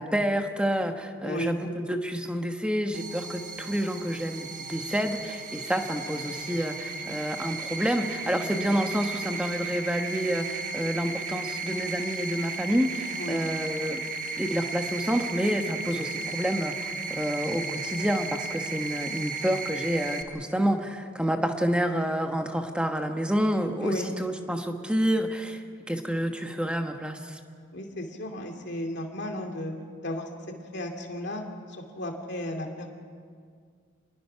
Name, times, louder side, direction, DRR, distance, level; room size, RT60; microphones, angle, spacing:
voice 1, 0.0-14.0 14.4-27.4, equal, 5° right, 4 dB, 1.2 m, -28 dB
voice 2, 1.2-1.5 8.2-8.6 13.2-13.4 23.8-24.1 27.7-29.7 30.0-30.3 30.7-31.4 31.7-32.9, left 1 dB, 50° left, 2 dB, 2.6 m, -34 dB
sound 1, 2.9-20.2, right 4 dB, 35° right, 1.3 m, -35 dB
27.5 x 20.5 x 5.8 m, 2.1 s
head